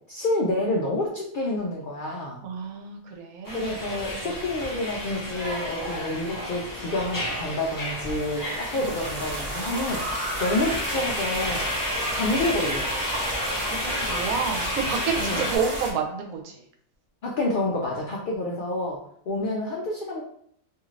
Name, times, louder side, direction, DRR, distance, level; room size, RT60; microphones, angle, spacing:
voice 1, 0.1-2.4 3.5-11.7 12.1-12.9 15.2-15.5 17.2-19.0 19.3-20.2, left 2 dB, 85° left, -2 dB, 0.4 m, -28 dB
voice 2, 2.4-3.7 4.2-4.4 8.7-8.9 13.2-16.6, right 5 dB, 90° right, 2 dB, 1.1 m, -30 dB
sound 1, 3.4-15.6, left 1 dB, 25° left, 0.5 m, -31 dB
sound 2, 7.5-15.9, right 1 dB, 40° right, 0.6 m, -34 dB
2.6 x 2.4 x 3.1 m, 0.66 s
omnidirectional pair, 1.5 m